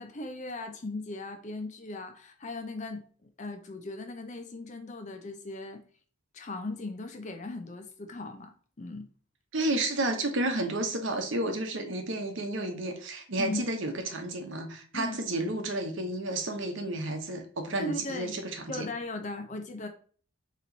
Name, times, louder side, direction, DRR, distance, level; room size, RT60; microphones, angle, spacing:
voice 1, 0.0-5.8 6.3-9.1 13.4-13.6 14.9-15.2 17.8-18.4 18.7-19.9, left 2 dB, 35° left, 0.5 m, -38 dB
voice 2, 9.5-18.9, right 2 dB, 65° right, 0.9 m, -31 dB
4.2 x 3.0 x 4.0 m
head